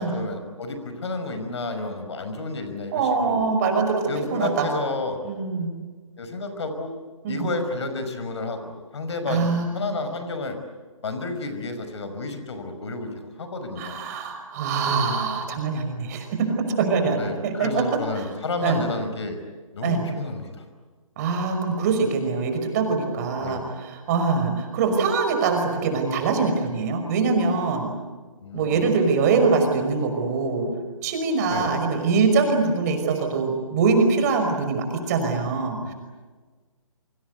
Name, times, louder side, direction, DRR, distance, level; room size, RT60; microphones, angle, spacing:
voice 1, 0.0-3.4 4.1-5.2 6.2-6.9 7.3-10.6 11.0-13.1 13.4-14.0 17.2-19.4 19.7-20.7 23.4-23.7 28.4-28.8 31.4-31.7 35.8-35.9, left 3 dB, 55° left, 8 dB, 5.5 m, -31 dB
voice 2, 2.9-4.7 5.2-5.7 7.2-7.5 9.3-9.8 13.8-16.5 16.8-17.8 18.2-18.3 18.6-18.8 19.8-20.0 21.2-27.9 28.5-30.7 31.0-35.9, right 4 dB, 30° right, 5 dB, 5.6 m, -23 dB
28.0 x 25.0 x 8.2 m, 1.4 s
figure-of-eight pair, 145°, 17 cm